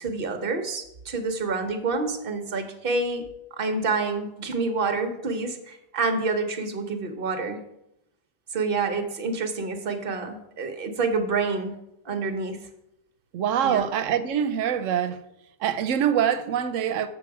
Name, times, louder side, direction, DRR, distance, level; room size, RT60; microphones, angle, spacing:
voice 1, 0.0-3.2 3.5-7.6 8.5-11.8 12.0-12.6 13.6-13.8, right 4 dB, 50° right, 1.0 m, -28 dB
voice 2, 13.3-15.2 15.6-17.1, right 9 dB, 80° right, 1.0 m, -24 dB
7.2 x 6.3 x 4.7 m
omnidirectional pair, 1.3 m